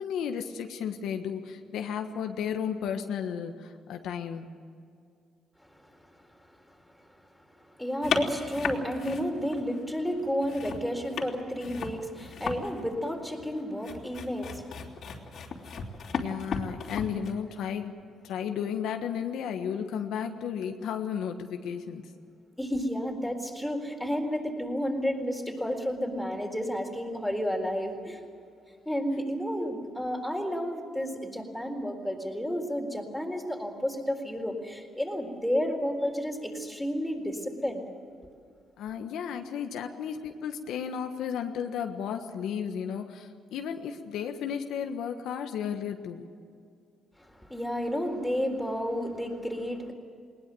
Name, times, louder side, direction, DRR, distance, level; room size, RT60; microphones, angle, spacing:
voice 1, 0.0-4.5 16.1-17.9 18.2-22.0 38.8-46.3, left 8 dB, 85° left, 5 dB, 1.4 m, -33 dB
voice 2, 7.7-15.7 22.6-28.2 28.9-37.8 47.2-49.9, equal, 5° left, 2 dB, 4.1 m, -31 dB
sound 1, 8.0-9.8 10.2-17.3, left 6 dB, 65° left, 3.2 m, -35 dB
20.5 x 19.5 x 7.8 m, 2.3 s
cardioid pair, 90°, 0 cm